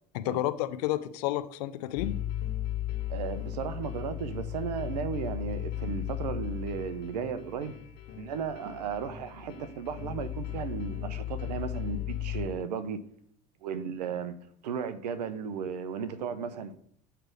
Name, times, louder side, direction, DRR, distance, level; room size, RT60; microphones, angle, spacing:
voice 1, 0.1-2.1, left 14 dB, 70° left, 0.6 m, -30 dB
sound 1, 2.0-12.5, left 12 dB, 55° left, 1.6 m, -36 dB
voice 2, 3.1-7.7 8.1-13.0 13.6-14.4 14.6-16.7, right 6 dB, 80° right, 0.7 m, -35 dB
7.6 x 3.4 x 6.1 m
hypercardioid pair, 75°, 21 cm